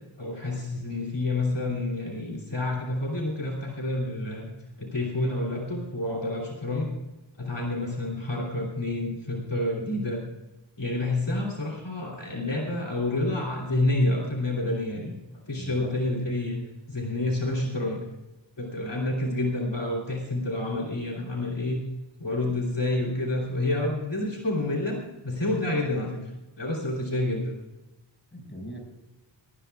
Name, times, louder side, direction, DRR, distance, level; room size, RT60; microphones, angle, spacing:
voice 1, 0.2-4.5 4.8-6.9 7.4-10.2 10.8-15.1 15.5-16.6 16.9-18.0 18.6-21.8 22.2-25.0 25.2-26.3 26.6-27.5, left 2 dB, 65° left, -2 dB, 3.4 m, -28 dB
voice 2, 15.5-16.3 28.3-28.8, equal, 25° left, 1 dB, 5.7 m, -41 dB
20.0 x 18.5 x 2.4 m, 1.0 s
wide cardioid pair, 50°, 46 cm